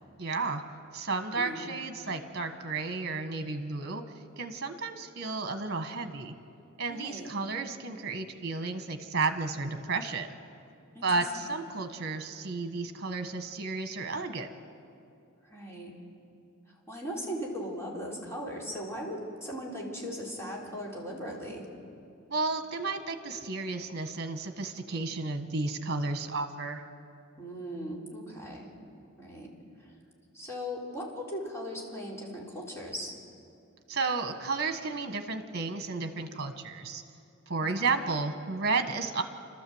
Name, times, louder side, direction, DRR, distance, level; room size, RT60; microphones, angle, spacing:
voice 1, 0.2-0.6 0.9-4.0 4.4-6.3 6.8-10.3 11.0-14.5 22.3-26.8 33.9-37.0 37.5-39.2, right 3 dB, 50° right, 7 dB, 1.4 m, -32 dB
voice 2, 6.9-7.3 10.9-11.1 11.4-11.6 15.4-15.9 16.9-21.7 27.4-28.7 29.2-29.5 29.8-29.9 30.3-33.1 37.7-38.0, equal, 15° left, -4 dB, 4.0 m, -38 dB
29.0 x 13.0 x 8.0 m, 2.5 s
head